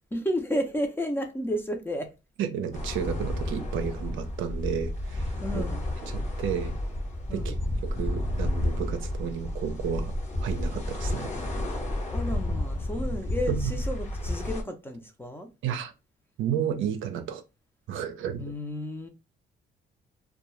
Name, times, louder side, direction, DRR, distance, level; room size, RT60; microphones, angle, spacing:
voice 1, 0.1-2.1 5.4-5.8 7.3-7.5 12.1-15.5 18.4-19.1, equal, 10° left, 0.6 m, -32 dB
voice 2, 2.4-5.6 6.0-6.7 7.3-7.5 7.8-10.1 10.4-11.3 13.5-13.8 15.6-15.9 16.4-17.4 17.9-18.4, right 8 dB, 80° right, 0.5 m, -32 dB
sound 1, 2.7-14.6, left 1 dB, 35° left, 0.9 m, -31 dB
2.3 x 2.3 x 2.9 m
cardioid pair, 90°, 20 cm